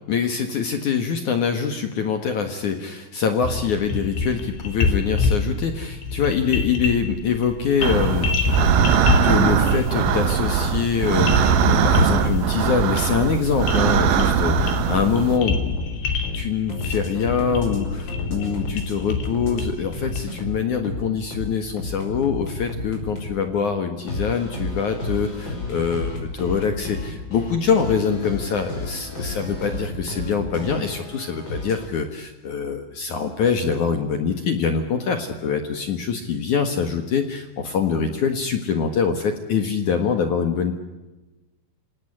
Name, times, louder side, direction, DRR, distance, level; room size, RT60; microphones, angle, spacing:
voice 1, 0.1-8.3 9.1-15.8 16.3-40.7, left 6 dB, 55° left, 7 dB, 2.3 m, -24 dB
sound 1, 3.4-20.2, left 5 dB, 80° left, 5.4 m, -27 dB
sound 2, 7.8-15.4, right 7 dB, 80° right, 3.9 m, -20 dB
sound 3, 13.9-19.6 19.9-23.4 24.1-31.9, left 2 dB, 25° left, 5.9 m, -32 dB
27.0 x 18.0 x 9.9 m, 1.1 s
omnidirectional pair, 5.4 m